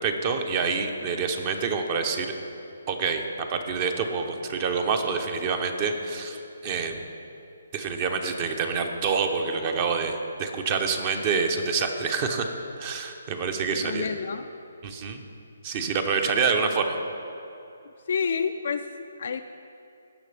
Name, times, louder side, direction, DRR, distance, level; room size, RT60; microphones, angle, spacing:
voice 1, 0.0-2.3 2.9-3.2 3.5-7.0 7.7-12.4 12.8-14.1 14.8-15.2 15.6-17.0, right 5 dB, 30° right, 6 dB, 0.7 m, -27 dB
voice 2, 13.7-14.5 18.1-19.4, left 6 dB, 60° left, 7 dB, 0.3 m, -29 dB
16.0 x 6.0 x 3.4 m, 2.7 s
hypercardioid pair, 155°, 0 cm